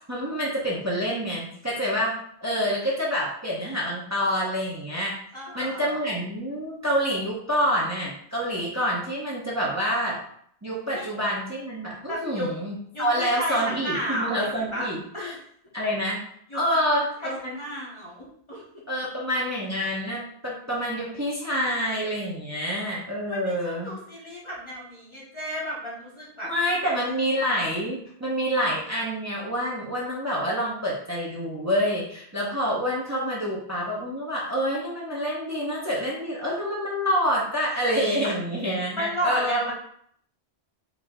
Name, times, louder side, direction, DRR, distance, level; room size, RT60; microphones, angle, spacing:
voice 1, 0.1-2.1 2.4-5.2 5.5-10.2 10.6-15.3 15.7-16.2 16.5-17.6 18.9-23.9 26.4-39.7, equal, 15° right, -5 dB, 0.9 m, -27 dB
voice 2, 5.3-6.0 10.9-11.1 12.1-12.5 12.9-14.9 15.1-15.4 16.5-16.6 17.2-17.3 17.6-18.6 23.3-26.5 38.2-38.3 39.0-39.7, equal, 30° left, -5 dB, 1.1 m, -32 dB
4.9 x 2.9 x 3.7 m, 0.65 s
omnidirectional pair, 1.1 m